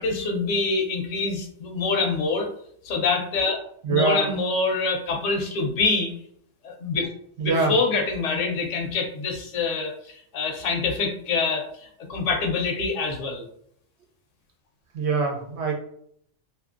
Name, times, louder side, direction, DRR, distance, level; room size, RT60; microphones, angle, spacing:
voice 1, 0.0-2.5 2.8-3.6 3.9-6.1 6.6-7.1 7.4-13.4, left 4 dB, 75° left, 2 dB, 0.9 m, -25 dB
voice 2, 3.8-4.2 7.4-7.8 14.9-15.7, right 4 dB, 65° right, 1 dB, 0.8 m, -23 dB
2.7 x 2.5 x 2.4 m, 0.68 s
omnidirectional pair, 1.3 m